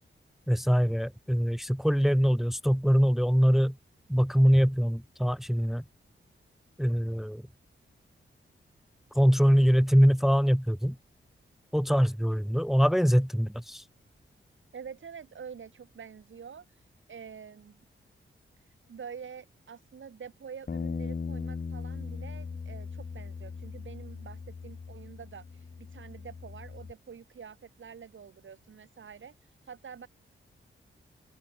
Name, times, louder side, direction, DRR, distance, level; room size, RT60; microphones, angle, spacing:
voice 1, 0.5-3.8 4.1-5.8 6.8-7.4 9.1-11.0 11.7-13.8, equal, ahead, 1.1 m, -23 dB
voice 2, 14.7-16.7 17.1-17.8 18.9-29.3 29.7-30.1, right 6 dB, 70° right, 3.4 m, -46 dB
Bass guitar, 20.7-26.9, left 5 dB, 45° left, 1.3 m, -39 dB
open air
cardioid pair, 75°, 21 cm